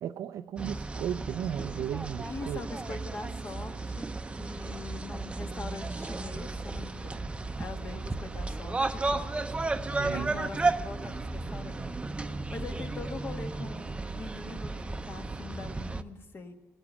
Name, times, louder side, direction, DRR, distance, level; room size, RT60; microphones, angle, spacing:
voice 1, 0.0-2.6 9.9-10.5, right 10 dB, 75° right, 9 dB, 0.4 m, -35 dB
sound 1, 0.6-16.0, right 3 dB, 20° right, 0.6 m, -34 dB
voice 2, 2.2-4.1 4.4-7.3 7.6-11.9 12.1-16.6, left 4 dB, 45° left, 5 dB, 1.6 m, -43 dB
18.5 x 8.8 x 7.1 m, 1.2 s
cardioid pair, 90°, 6 cm